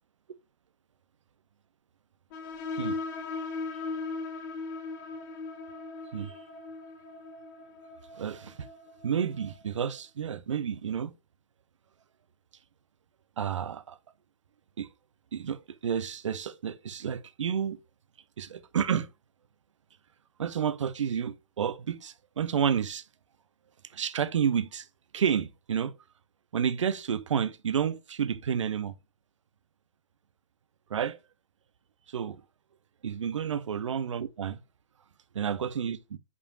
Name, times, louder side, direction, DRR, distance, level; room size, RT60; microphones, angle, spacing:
sound 1, 2.3-9.6, left 3 dB, 40° left, 1.7 m, -38 dB
voice 1, 8.1-8.7 9.0-11.1 13.4-14.0 14.8-14.9 15.3-17.8 18.4-19.1 20.4-23.0 23.9-24.9 25.1-25.9 26.5-28.9 30.9-31.2 32.1-32.4 33.0-34.6 35.3-36.2, right 8 dB, 75° right, 0.7 m, -30 dB
8.2 x 4.9 x 2.5 m
hypercardioid pair, 130°, 16 cm